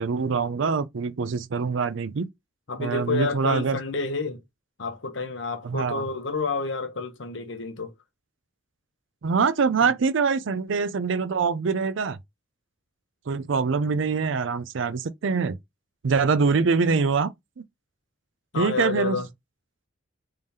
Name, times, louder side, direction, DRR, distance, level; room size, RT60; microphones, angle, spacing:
voice 1, 0.0-2.3 2.8-3.8 5.6-6.1 9.2-12.2 13.3-15.6 16.0-17.6 18.5-19.2, right 5 dB, 70° right, 0.4 m, -24 dB
voice 2, 2.7-4.4 4.8-7.9 18.5-19.3, left 4 dB, 65° left, 0.9 m, -29 dB
3.6 x 3.3 x 2.7 m
head